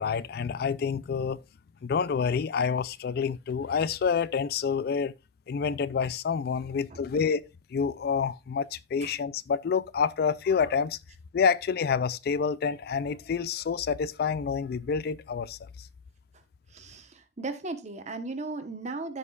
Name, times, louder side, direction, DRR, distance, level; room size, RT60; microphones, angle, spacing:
voice 1, 0.0-1.4 1.8-5.1 5.5-11.0 11.3-15.9, left 6 dB, 60° left, 0.3 m, -28 dB
voice 2, 16.7-19.2, right 3 dB, 40° right, 1.1 m, -36 dB
14.0 x 5.1 x 2.4 m
head